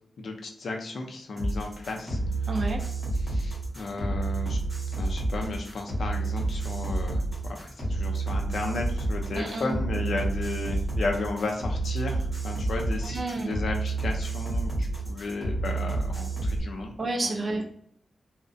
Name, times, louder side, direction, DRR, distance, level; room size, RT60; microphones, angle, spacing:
voice 1, 0.2-2.2 3.2-4.6 4.9-16.9 17.2-17.6, left 3 dB, 60° left, 2 dB, 0.4 m, -34 dB
sound 1, 1.4-16.6, right 2 dB, 5° right, 1.0 m, -29 dB
voice 2, 2.5-2.8 9.3-9.7 13.0-13.5 17.0-17.6, right 2 dB, 35° right, 3 dB, 0.4 m, -30 dB
2.4 x 2.0 x 2.5 m, 0.67 s
wide cardioid pair, 180°, 0 cm